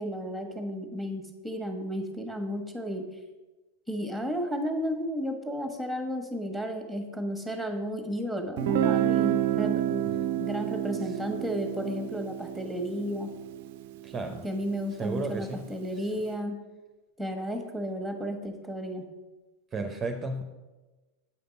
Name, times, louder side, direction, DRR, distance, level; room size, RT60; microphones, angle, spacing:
voice 1, 0.0-3.1 3.9-10.1 10.4-13.3 14.4-16.5 17.2-19.1, equal, 5° left, 4 dB, 1.4 m, -33 dB
Guitar, 8.6-14.3, right 11 dB, 55° right, 0.4 m, -29 dB
voice 2, 14.0-14.4 15.0-15.7 15.9-16.1 19.7-20.4, right 3 dB, 20° right, 5 dB, 0.7 m, -34 dB
8.6 x 5.1 x 5.2 m, 1.2 s
figure-of-eight pair, 90°, 0 cm